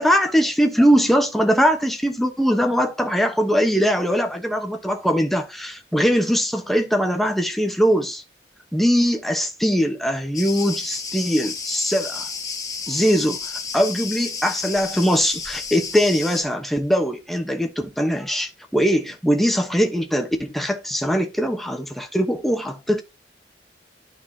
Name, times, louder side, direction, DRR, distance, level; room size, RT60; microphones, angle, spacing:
voice 1, 0.0-8.2 8.7-12.3 12.9-13.4 13.7-23.0, equal, ahead, 1.0 m, -21 dB
Cricket, 10.3-16.4, left 5 dB, 20° left, 1.5 m, -32 dB
12.0 x 4.2 x 2.8 m
head